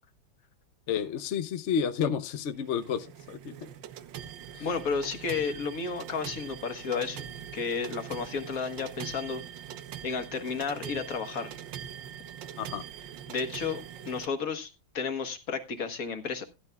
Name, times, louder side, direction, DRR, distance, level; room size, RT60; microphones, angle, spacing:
voice 1, 0.9-3.7 4.5-4.7 12.6-12.8, left 7 dB, 75° left, 0.6 m, -31 dB
sound 1, 2.5-14.3, right 9 dB, 70° right, 1.4 m, -43 dB
voice 2, 4.6-7.3 7.5-9.4 10.0-11.6 13.3-16.4, left 5 dB, 45° left, 1.6 m, -32 dB
16.0 x 10.5 x 2.3 m
omnidirectional pair, 2.2 m